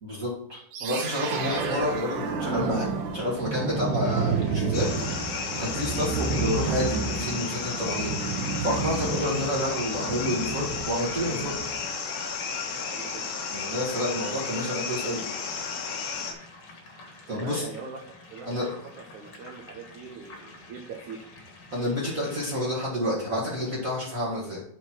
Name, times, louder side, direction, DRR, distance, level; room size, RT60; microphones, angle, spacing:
voice 1, 0.0-11.5 13.5-15.2 17.3-17.7 18.4-18.7 21.7-24.6, left 1 dB, 50° right, -5 dB, 0.9 m, -29 dB
sound 1, 0.7-11.8, right 5 dB, 65° right, 2.7 m, -30 dB
sound 2, 4.0-22.4, left 2 dB, 50° left, 1.9 m, -48 dB
sound 3, 4.7-16.3, left 5 dB, 80° left, 3.6 m, -33 dB
voice 2, 12.9-13.4 17.3-18.0 18.3-18.8 19.1-21.3, right 5 dB, 85° right, 1 dB, 1.7 m, -42 dB
11.0 x 4.3 x 4.5 m, 0.71 s
omnidirectional pair, 5.0 m